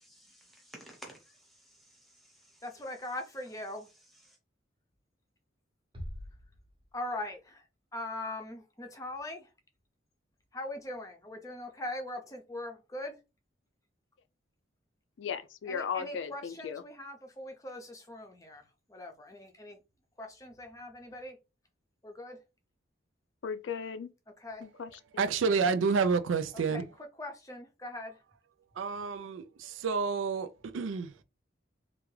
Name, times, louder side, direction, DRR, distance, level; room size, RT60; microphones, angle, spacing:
voice 1, 0.2-2.6, equal, ahead, 0.9 m, -53 dB
voice 2, 2.6-3.9 6.9-7.7 7.9-9.5 10.5-13.2 15.7-19.8 20.2-21.4 22.0-22.4 24.4-24.7 26.5-26.8 27.2-28.2, left 1 dB, 15° left, 0.6 m, -41 dB
sound 1, 5.9-7.6, equal, 25° right, 0.8 m, -45 dB
voice 3, 15.2-16.8 23.4-24.1 24.6-25.3, left 6 dB, 75° left, 0.4 m, -37 dB
voice 4, 25.2-26.8 28.8-31.1, right 5 dB, 90° right, 0.4 m, -29 dB
3.4 x 2.4 x 3.2 m
head